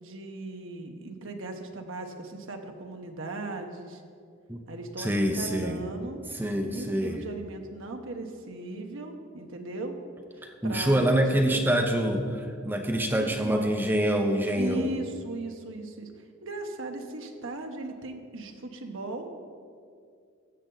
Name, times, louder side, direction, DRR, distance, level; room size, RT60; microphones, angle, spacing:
voice 1, 0.0-4.0 4.7-6.2 6.7-10.0 10.6-11.8 13.4-13.8 14.6-16.1 16.4-19.3, right 2 dB, 60° right, 4 dB, 1.0 m, -37 dB
voice 2, 5.0-5.8 6.3-7.2 10.4-14.9, right 1 dB, 10° right, 3 dB, 0.6 m, -26 dB
13.5 x 7.7 x 3.9 m, 2.3 s
head